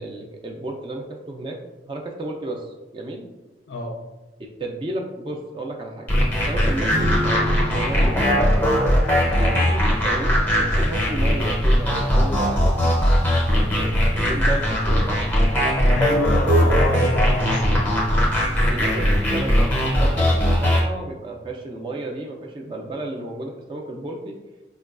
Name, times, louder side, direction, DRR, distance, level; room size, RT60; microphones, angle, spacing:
voice 1, 0.0-1.6 1.9-3.3 4.6-6.1 6.3-8.7 9.4-12.8 13.7-15.2 18.7-24.4, right 2 dB, 30° right, 1 dB, 0.3 m, -32 dB
voice 2, 3.7-4.0 9.4-9.6 15.9-17.9, left 1 dB, 80° left, 1 dB, 0.4 m, -27 dB
sound 1, 6.1-20.8, equal, 10° left, 0.6 m, -19 dB
sound 2, 6.9-11.1, equal, 90° right, 0.7 m, -32 dB
4.7 x 2.2 x 2.4 m, 1.1 s
head